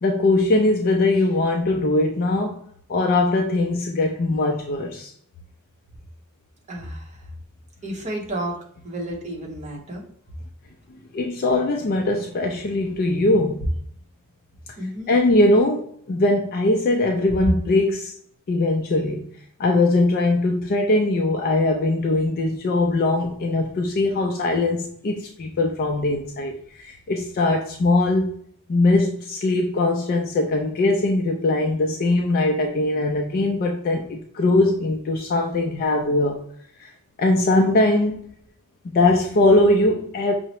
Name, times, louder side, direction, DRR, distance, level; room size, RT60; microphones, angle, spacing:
voice 1, 0.0-2.6 2.9-5.1 11.1-13.6 15.1-18.1 18.5-19.3 19.6-28.4 28.7-36.4 36.8-36.9 37.2-38.3 38.8-40.3, left 2 dB, 40° left, 2 dB, 0.4 m, -21 dB
voice 2, 6.7-7.3 7.8-8.6 8.8-10.0 14.8-15.2, right 1 dB, 35° right, -1 dB, 0.9 m, -32 dB
5.5 x 2.0 x 2.9 m, 0.63 s
head